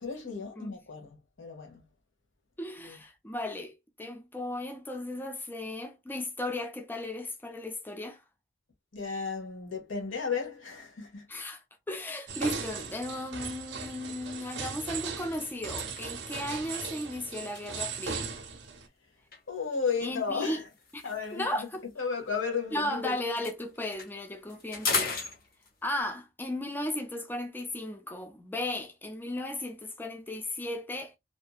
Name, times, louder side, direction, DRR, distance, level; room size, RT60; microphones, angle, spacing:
voice 1, 0.0-1.8 2.9-3.0 8.9-11.2 19.5-20.6 21.0-21.4 22.0-23.2, left 5 dB, 80° left, 1.0 m, -34 dB
voice 2, 2.6-8.2 11.3-18.3 20.0-20.6 20.9-21.0 21.3-21.9 22.7-25.2 25.8-31.2, left 1 dB, 10° left, 0.4 m, -35 dB
sound 1, 12.3-18.9, right 5 dB, 65° right, 0.6 m, -38 dB
sound 2, 13.4-13.6 14.0-14.2 14.5-18.5 19.3-22.9 23.2-26.0, left 4 dB, 50° left, 0.9 m, -39 dB
2.6 x 2.5 x 2.2 m
head